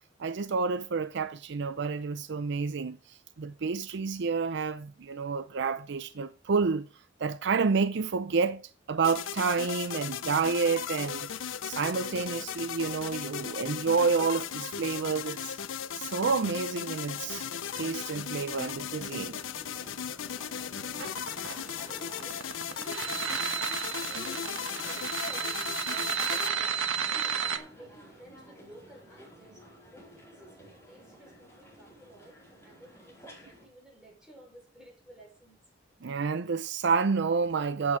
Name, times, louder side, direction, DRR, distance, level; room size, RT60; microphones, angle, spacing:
voice 1, 0.2-6.9 7.2-8.6 8.9-11.3 11.6-15.6 16.0-17.5 17.8-19.4 36.0-38.0, right 5 dB, 65° right, 0.5 m, -29 dB
sound 1, 9.0-26.5, left 8 dB, 80° left, 0.6 m, -37 dB
sound 2, 17.1-33.7, right 1 dB, 15° left, 4.6 m, -52 dB
voice 2, 20.2-35.7, right 1 dB, 5° right, 5.7 m, -53 dB
sound 3, 21.0-27.6, right 7 dB, 80° right, 1.2 m, -32 dB
8.8 x 8.2 x 5.1 m
head